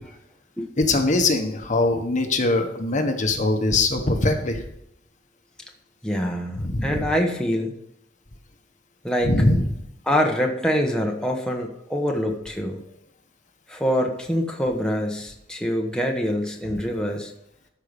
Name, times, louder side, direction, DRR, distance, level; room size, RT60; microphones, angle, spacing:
voice 1, 0.8-4.6 6.6-7.1 9.2-9.6, left 2 dB, 40° left, 5 dB, 1.2 m, -22 dB
voice 2, 6.0-7.7 9.0-9.3 10.1-12.8 13.7-17.3, equal, 5° left, 1 dB, 1.2 m, -25 dB
13.0 x 5.6 x 5.3 m, 0.77 s
head